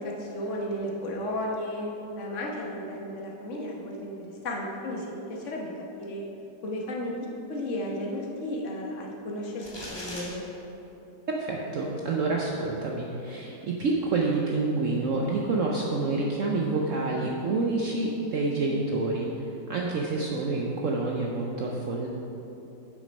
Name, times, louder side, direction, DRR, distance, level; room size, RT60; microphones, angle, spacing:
voice 1, 0.0-1.9 2.2-4.1 4.4-6.2 6.6-7.1 7.5-10.4, left 1 dB, 45° left, -1 dB, 1.3 m, -34 dB
sound 1, 9.6-10.3, left 1 dB, 15° left, 1.0 m, -38 dB
voice 2, 11.3-19.3 19.7-22.1, right 3 dB, 65° right, -1 dB, 0.8 m, -28 dB
7.6 x 6.4 x 5.3 m, 3.0 s
omnidirectional pair, 2.0 m